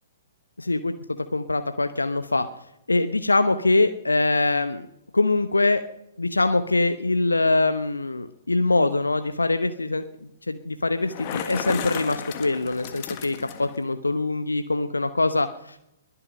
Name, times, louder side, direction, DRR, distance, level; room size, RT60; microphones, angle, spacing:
voice 1, 1.3-2.5 2.9-4.9 5.1-5.8 6.2-15.8, left 2 dB, 80° left, 10 dB, 0.9 m, -23 dB
Bicycle, 10.9-13.8, left 10 dB, 35° left, 1.6 m, -34 dB
22.0 x 8.8 x 5.3 m, 0.81 s
figure-of-eight pair, 120°, 0 cm